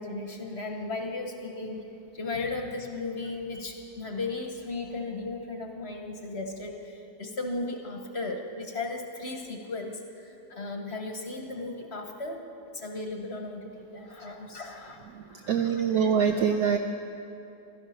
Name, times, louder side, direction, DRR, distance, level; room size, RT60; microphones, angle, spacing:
voice 1, 0.0-12.5 12.7-15.0 15.3-15.8, left 3 dB, 40° left, 3 dB, 1.1 m, -36 dB
voice 2, 15.1-16.8, right 7 dB, 70° right, 4 dB, 1.0 m, -25 dB
16.0 x 13.0 x 5.7 m, 2.7 s
omnidirectional pair, 2.0 m